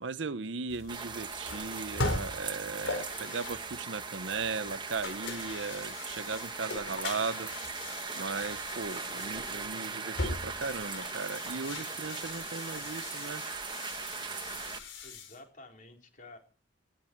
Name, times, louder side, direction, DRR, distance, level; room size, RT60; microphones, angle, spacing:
voice 1, 0.0-13.4, right 4 dB, 70° right, 0.8 m, -37 dB
sound 1, 0.7-15.4, left 2 dB, 80° left, 4.8 m, -40 dB
sound 2, 0.9-14.8, right 5 dB, 25° right, 1.4 m, -39 dB
voice 2, 15.0-16.4, left 2 dB, 45° left, 4.1 m, -51 dB
19.5 x 15.5 x 4.6 m
head